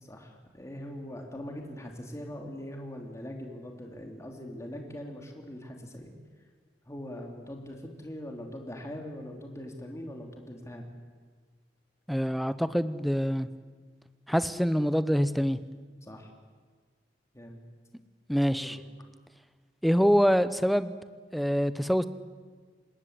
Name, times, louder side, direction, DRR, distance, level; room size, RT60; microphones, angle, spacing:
voice 1, 0.0-6.1 6.8-10.8 16.0-16.3 17.3-17.6 18.5-18.8, left 1 dB, 15° left, 1 dB, 2.9 m, -41 dB
voice 2, 12.1-13.5 14.3-15.6 18.3-18.8 19.8-20.9 21.3-22.0, equal, ahead, 13 dB, 0.9 m, -25 dB
26.0 x 20.5 x 8.1 m, 1.5 s
head